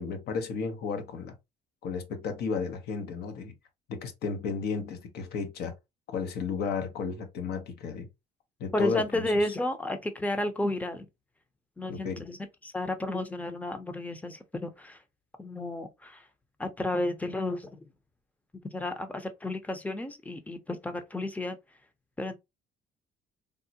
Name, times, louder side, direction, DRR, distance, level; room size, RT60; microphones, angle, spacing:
voice 1, 0.0-1.4 1.8-3.5 3.9-5.7 6.1-8.1 8.6-9.3 11.9-12.1, left 5 dB, 75° left, 0.9 m, -33 dB
voice 2, 8.7-11.1 11.8-12.4 12.6-15.0 15.4-16.3 16.6-17.8 18.7-21.6 22.2-22.4, left 1 dB, 10° left, 0.6 m, -32 dB
3.6 x 2.1 x 2.7 m
cardioid pair, 110°, 17 cm